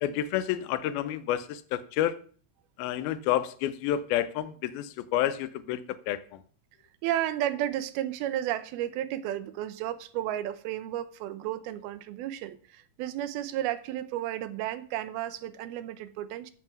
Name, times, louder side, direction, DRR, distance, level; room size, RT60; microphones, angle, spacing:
voice 1, 0.0-2.2 2.8-6.4, left 12 dB, 85° left, 2.6 m, -29 dB
voice 2, 7.0-16.5, right 12 dB, 90° right, 2.7 m, -33 dB
11.0 x 7.7 x 5.9 m
omnidirectional pair, 4.3 m